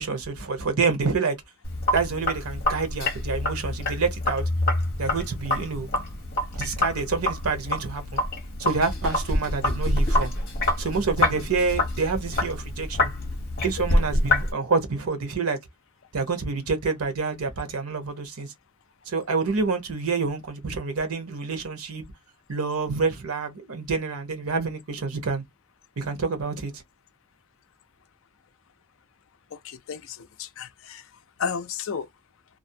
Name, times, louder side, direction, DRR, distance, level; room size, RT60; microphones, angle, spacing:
voice 1, 0.0-1.4 1.9-4.4 5.0-5.9 6.5-8.2 8.6-10.3 10.8-13.1 13.6-15.6 16.1-18.5 19.1-22.0 22.5-25.4 26.0-26.8, right 4 dB, 90° right, 0.8 m, -27 dB
Sink (filling or washing), 1.6-14.5, left 1 dB, 45° left, 0.9 m, -26 dB
voice 2, 29.6-31.0 31.4-32.1, left 6 dB, 60° left, 0.4 m, -32 dB
2.5 x 2.0 x 2.6 m
head